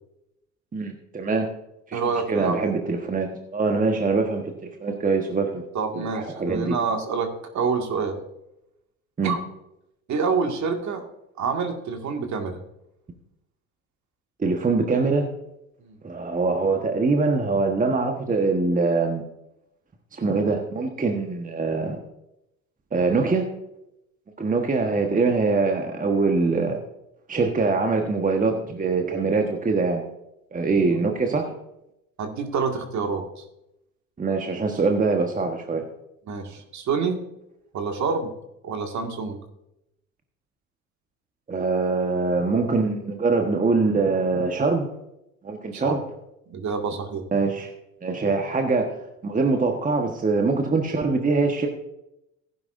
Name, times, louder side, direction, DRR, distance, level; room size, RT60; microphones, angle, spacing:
voice 1, 0.7-1.5 1.9-2.0 2.3-5.6 5.9-6.8 9.2-9.4 14.4-15.3 16.0-19.2 20.1-22.0 22.9-23.5 24.4-26.8 27.3-30.0 30.5-31.5 34.2-35.8 41.5-44.9 45.4-46.0 47.3-47.7 48.0-49.0 49.2-51.7, right 3 dB, 20° right, 4 dB, 1.4 m, -23 dB
voice 2, 1.9-2.6 5.7-8.2 9.2-9.4 10.1-11.0 11.4-12.6 15.8-16.0 30.9-31.0 32.2-33.2 36.3-37.2 37.7-38.3 38.6-39.4 45.7-46.0 46.5-47.2, right 5 dB, 45° right, 4 dB, 2.1 m, -27 dB
15.5 x 10.5 x 2.6 m, 0.85 s
hypercardioid pair, 70°, 40 cm